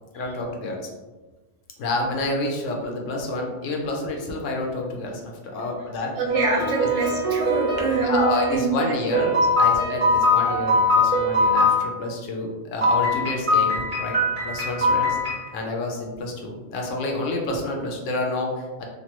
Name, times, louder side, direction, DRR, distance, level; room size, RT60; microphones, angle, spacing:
voice 1, 0.1-0.9 1.8-6.2 8.0-15.2 15.5-18.8, left 2 dB, 85° left, 1 dB, 1.0 m, -29 dB
voice 2, 6.1-9.3 9.7-10.1, right 3 dB, 75° right, -2 dB, 1.0 m, -26 dB
sound 1, 6.3-8.6 9.1-11.8 12.8-15.5, left 1 dB, 45° right, 1.0 m, -22 dB
3.2 x 2.2 x 2.9 m, 1.2 s
omnidirectional pair, 1.3 m